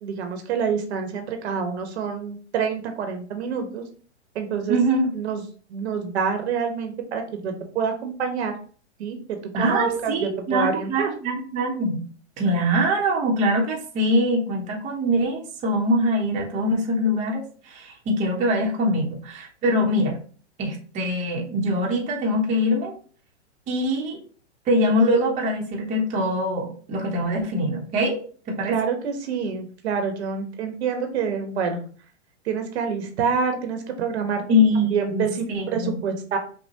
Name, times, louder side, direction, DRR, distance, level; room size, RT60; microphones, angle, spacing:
voice 1, 0.0-3.8 4.3-4.8 5.1-5.4 5.7-8.5 9.0-11.1 28.7-31.8 32.5-36.4, right 6 dB, 65° right, 5 dB, 1.0 m, -27 dB
voice 2, 4.7-5.1 9.5-12.0 12.4-20.2 20.6-22.9 23.7-24.2 24.7-28.2 28.5-28.9 34.5-36.1, equal, 20° right, 0 dB, 0.8 m, -23 dB
5.6 x 2.2 x 2.8 m, 0.42 s
hypercardioid pair, 135°, 35 cm